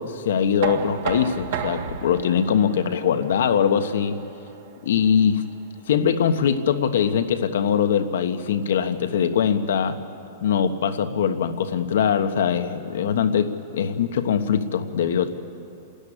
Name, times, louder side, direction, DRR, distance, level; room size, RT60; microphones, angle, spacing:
voice 1, 0.0-4.2 4.8-5.4 5.9-10.0 10.4-15.3, left 7 dB, 70° left, 8 dB, 1.3 m, -22 dB
Knock, 0.6-6.4, right 8 dB, 45° right, 1.3 m, -34 dB
27.5 x 13.5 x 10.0 m, 2.6 s
supercardioid pair, 175°, 0 cm